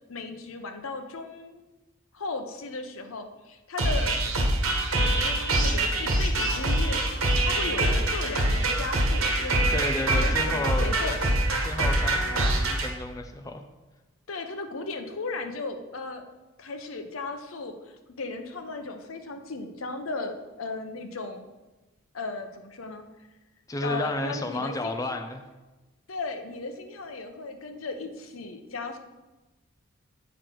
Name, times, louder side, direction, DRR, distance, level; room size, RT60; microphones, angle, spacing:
voice 1, 0.1-1.6 2.1-4.2 5.0-7.1 7.4-11.1 14.3-16.2 16.6-17.8 18.2-21.5 22.1-23.1 23.8-25.2 26.1-29.0, left 3 dB, 85° left, 6 dB, 0.8 m, -36 dB
sound 1, 3.8-12.9, right 1 dB, 80° right, 1.4 m, -24 dB
voice 2, 9.7-11.2 11.6-13.6 23.7-25.4, left 2 dB, 15° left, 5 dB, 0.5 m, -32 dB
8.0 x 6.2 x 4.6 m, 1.1 s
head